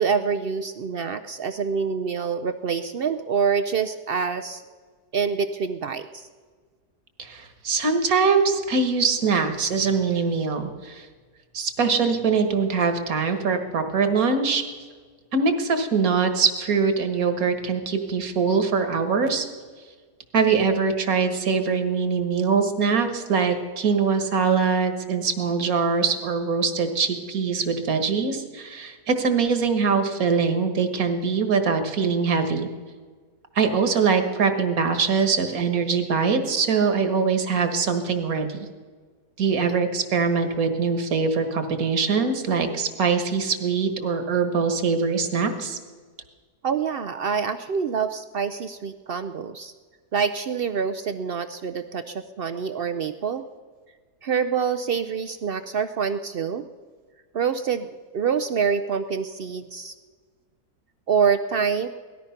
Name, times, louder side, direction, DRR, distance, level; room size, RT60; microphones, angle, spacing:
voice 1, 0.0-4.6 5.1-6.3 46.6-49.7 50.1-53.4 54.2-56.6 57.3-59.9 61.1-61.9, right 6 dB, 80° right, 10 dB, 0.5 m, -26 dB
voice 2, 7.2-11.1 11.5-14.6 15.3-19.5 20.3-32.7 33.6-38.7 39.4-45.8, right 5 dB, 65° right, 7 dB, 1.8 m, -23 dB
18.0 x 13.5 x 5.8 m, 1.5 s
omnidirectional pair, 1.7 m